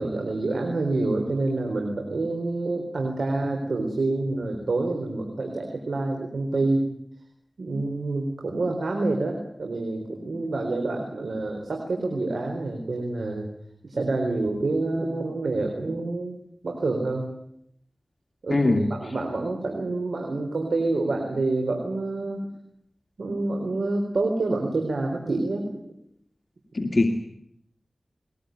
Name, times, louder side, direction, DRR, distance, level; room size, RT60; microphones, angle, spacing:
voice 1, 0.0-6.9 7.6-13.5 13.8-16.4 16.6-17.3 18.4-22.5 23.2-25.6, right 2 dB, 90° right, 2 dB, 4.2 m, -27 dB
voice 2, 18.5-18.9 26.7-27.1, left 2 dB, 55° left, 2 dB, 2.4 m, -21 dB
21.5 x 21.0 x 9.3 m, 0.73 s
cardioid pair, 40°, 0 cm